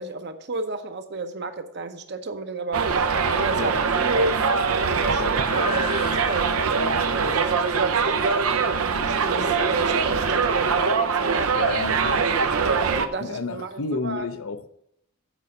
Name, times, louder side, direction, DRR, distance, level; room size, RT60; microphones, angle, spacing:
voice 1, 0.0-4.4 4.7-8.3 8.8-11.8 12.6-14.3, right 3 dB, 50° right, 8 dB, 0.8 m, -32 dB
Subway metro underground, 2.7-13.1, right 5 dB, 85° right, 0.7 m, -23 dB
sound 1, 5.3-12.3, left 5 dB, 40° left, 1.0 m, -42 dB
voice 2, 11.6-12.3 13.2-14.7, left 3 dB, 65° left, 11 dB, 0.7 m, -30 dB
8.0 x 5.4 x 7.7 m, 0.76 s
head